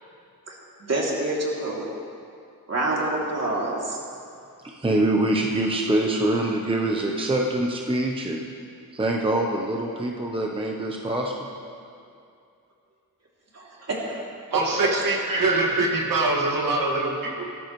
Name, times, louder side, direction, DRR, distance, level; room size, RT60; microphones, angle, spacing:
voice 1, 0.5-1.9 2.7-4.0 13.5-14.2 15.4-15.6, right 2 dB, 45° right, -4 dB, 3.0 m, -27 dB
voice 2, 4.6-8.5 8.9-11.3, right 1 dB, 15° right, 0 dB, 0.9 m, -24 dB
voice 3, 14.5-17.4, right 2 dB, 70° right, -2 dB, 2.1 m, -24 dB
17.5 x 13.5 x 3.2 m, 2.4 s
wide cardioid pair, 130°, 35 cm